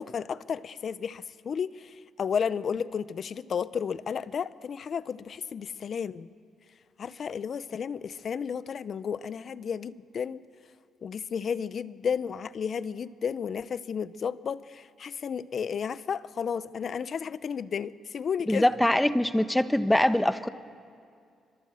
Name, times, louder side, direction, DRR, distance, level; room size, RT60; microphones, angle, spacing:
voice 1, 0.0-6.3 7.0-10.4 11.0-18.7, left 7 dB, 50° left, 16 dB, 0.7 m, -32 dB
voice 2, 18.5-20.5, left 1 dB, 5° left, 11 dB, 1.0 m, -23 dB
25.5 x 22.0 x 7.7 m, 2.3 s
cardioid pair, 90°, 0 cm